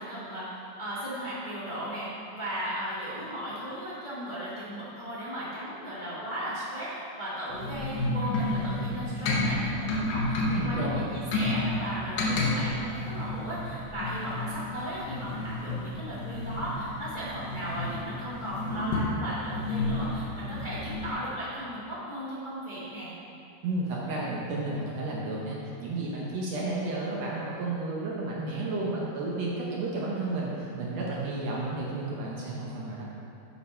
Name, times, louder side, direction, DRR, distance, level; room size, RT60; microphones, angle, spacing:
voice 1, 0.0-23.1, equal, 40° left, -10 dB, 0.6 m, -36 dB
sound 1, 7.5-21.1, left 2 dB, 70° left, 2.3 m, -31 dB
voice 2, 10.5-11.1 23.6-33.0, right 2 dB, 65° right, -4 dB, 1.9 m, -32 dB
8.5 x 4.8 x 5.6 m, 2.8 s
omnidirectional pair, 3.6 m